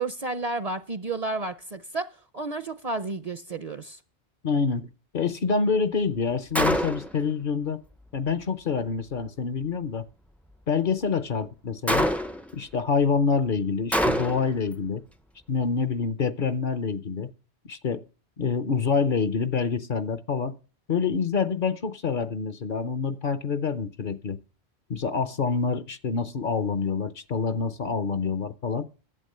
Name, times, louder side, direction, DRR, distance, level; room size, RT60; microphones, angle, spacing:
voice 1, 0.0-4.0, right 3 dB, 45° right, 0.6 m, -31 dB
voice 2, 4.4-7.8 8.1-10.0 10.7-12.1 12.5-15.0 15.5-17.3 17.7-18.0 18.4-20.6 20.9-24.4 24.9-28.9, left 5 dB, 55° left, 0.8 m, -26 dB
Gunshot gunfire, 6.5-7.2 11.9-12.5 13.9-14.6, equal, ahead, 0.3 m, -25 dB
11.0 x 8.1 x 6.6 m
omnidirectional pair, 1.1 m